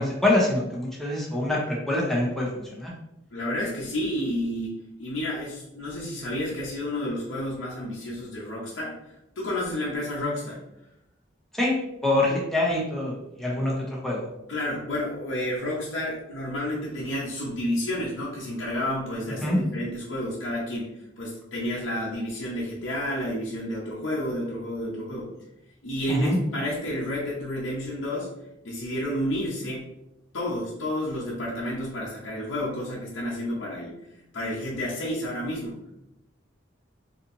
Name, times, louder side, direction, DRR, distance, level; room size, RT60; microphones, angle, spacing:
voice 1, 0.0-2.9 11.6-14.3 19.4-19.6 26.1-26.4, left 1 dB, ahead, -4 dB, 0.8 m, -25 dB
voice 2, 3.3-4.7 5.0-8.9 9.4-10.6 12.3-12.4 14.5-25.3 25.8-28.3 28.6-29.9 30.3-33.9 34.3-35.8, left 1 dB, 85° left, -5 dB, 0.8 m, -30 dB
4.2 x 2.9 x 2.6 m, 0.86 s
head